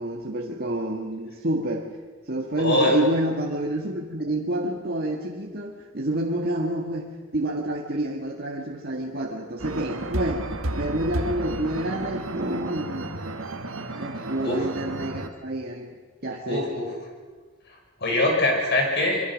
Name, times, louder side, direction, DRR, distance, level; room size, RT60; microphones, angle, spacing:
voice 1, 0.0-1.9 2.3-10.5 10.7-13.2 14.0-16.8, right 1 dB, 50° right, -1 dB, 1.8 m, -28 dB
voice 2, 2.6-2.9 14.4-14.6 16.5-16.8 18.0-19.2, left 1 dB, 55° left, 1 dB, 6.3 m, -22 dB
sound 1, 9.6-15.3, right 2 dB, 80° right, 1.6 m, -32 dB
27.0 x 23.0 x 6.4 m, 1.4 s
head